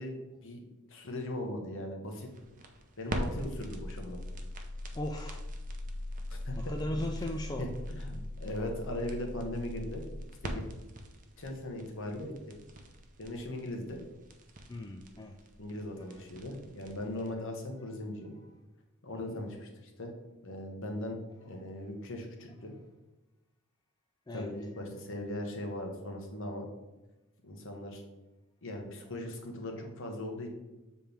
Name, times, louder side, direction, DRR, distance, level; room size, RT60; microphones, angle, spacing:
voice 1, 0.0-2.3 3.0-4.2 6.3-6.6 7.6-10.0 10.4-10.6 11.4-12.3 13.2-14.0 15.6-18.3 19.0-20.1 20.4-22.7 24.3-26.7 27.4-28.0 28.6-30.5, left 1 dB, 60° left, 2 dB, 1.2 m, -39 dB
sound 1, 2.1-17.3, equal, 35° right, 0.7 m, -41 dB
voice 2, 4.9-5.4 6.6-7.7 14.7-15.4 16.1-16.2 18.4-18.5 19.1-19.4 24.3-24.5, left 1 dB, 20° left, 2 dB, 0.4 m, -38 dB
7.3 x 4.4 x 3.5 m, 1.0 s
head